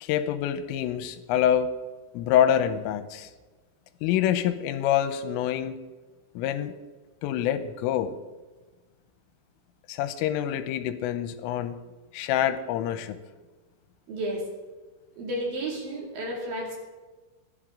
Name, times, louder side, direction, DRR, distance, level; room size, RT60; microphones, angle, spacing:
voice 1, 0.0-1.7 2.1-3.3 4.0-5.8 6.4-6.7 7.2-8.2 9.9-11.8 12.1-13.2, left 10 dB, 85° left, 11 dB, 3.3 m, -26 dB
voice 2, 14.1-14.4 15.2-16.8, right 1 dB, 50° right, -1 dB, 3.7 m, -32 dB
26.0 x 10.5 x 3.8 m, 1.3 s
omnidirectional pair, 5.8 m